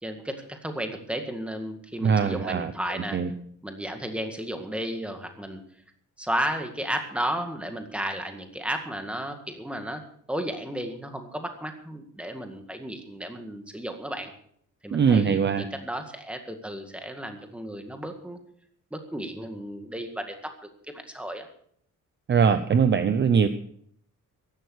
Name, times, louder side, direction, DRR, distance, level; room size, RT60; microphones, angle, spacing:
voice 1, 0.0-3.2 3.6-5.6 6.2-10.0 10.3-14.3 14.8-18.4 18.9-20.5 20.9-21.5, right 1 dB, 5° right, 5 dB, 1.9 m, -33 dB
voice 2, 2.0-2.7 3.1-3.3 14.9-15.7 22.3-23.5, right 6 dB, 35° right, 11 dB, 0.7 m, -21 dB
14.5 x 11.5 x 6.4 m, 0.64 s
wide cardioid pair, 165°, 32 cm